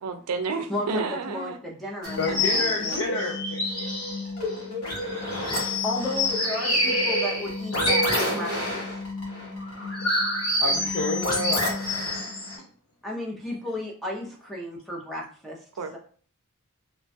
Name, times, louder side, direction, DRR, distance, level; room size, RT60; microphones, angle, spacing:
voice 1, 0.0-1.6 2.3-2.6 8.1-8.6 15.8-16.0, right 4 dB, 85° right, 8 dB, 0.4 m, -31 dB
voice 2, 0.7-3.1 5.8-8.9 13.0-15.7 15.9-16.0, left 1 dB, ahead, -3 dB, 0.5 m, -34 dB
sound 1, 2.0-12.6, left 1 dB, 80° left, 1.2 m, -27 dB
voice 3, 2.2-4.0 10.0-10.1 10.6-11.9, left 2 dB, 60° left, 0 dB, 0.4 m, -29 dB
3.1 x 2.2 x 2.6 m, 0.44 s
head